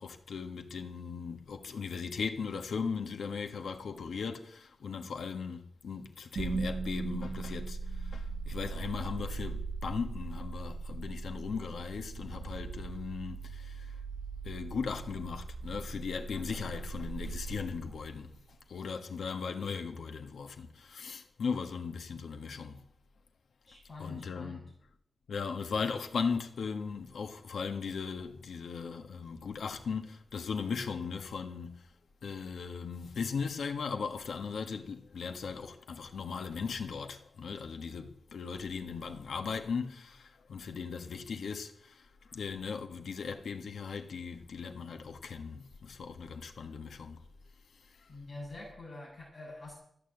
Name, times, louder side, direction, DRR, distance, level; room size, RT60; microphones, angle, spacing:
voice 1, 0.0-13.9 14.4-18.3 18.7-22.8 24.0-24.6 25.3-31.9 32.2-42.1 42.3-47.2, left 5 dB, 85° left, 1.5 m, -38 dB
sound 1, 6.3-18.5, right 4 dB, 65° right, 1.1 m, -39 dB
voice 2, 23.7-24.7 48.1-49.7, left 2 dB, 30° left, 6.8 m, -46 dB
14.0 x 9.2 x 7.9 m
wide cardioid pair, 175°, 0 cm